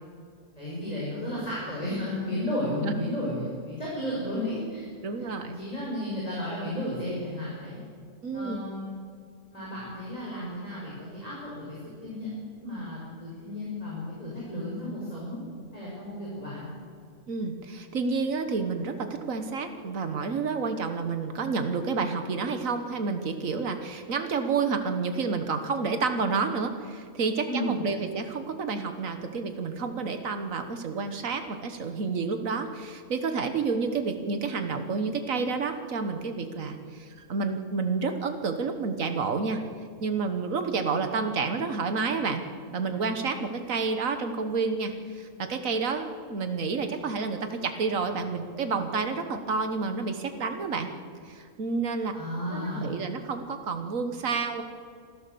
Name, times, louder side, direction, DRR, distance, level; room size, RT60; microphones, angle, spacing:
voice 1, 0.6-4.8 5.2-7.8 8.3-8.9 9.5-12.3 12.6-15.4 15.7-16.6 27.4-27.8 52.1-52.8, left 1 dB, 30° left, -6 dB, 6.2 m, -33 dB
voice 2, 5.0-5.5 8.2-8.6 17.3-39.6 40.0-42.4 42.7-50.9 51.3-52.1 52.5-54.6, right 4 dB, 85° right, 7 dB, 1.7 m, -29 dB
25.5 x 15.5 x 6.9 m, 2.3 s
omnidirectional pair, 1.4 m